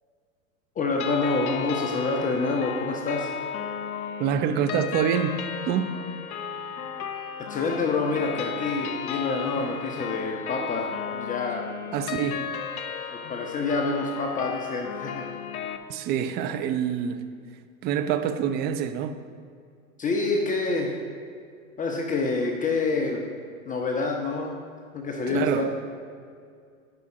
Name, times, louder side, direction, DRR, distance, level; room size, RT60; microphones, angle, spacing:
voice 1, 0.8-3.3 7.5-11.7 13.1-15.3 20.0-21.0 21.8-23.2 23.7-24.6 24.9-25.7, left 3 dB, 20° left, 1 dB, 0.8 m, -27 dB
sound 1, 1.0-15.8, left 7 dB, 75° left, 0.9 m, -34 dB
voice 2, 4.2-5.4 5.7-6.0 11.9-12.4 15.9-17.2 17.8-19.2 25.3-25.7, right 8 dB, 25° right, 8 dB, 0.4 m, -26 dB
10.5 x 5.5 x 4.9 m, 2.2 s
hypercardioid pair, 100°, 43 cm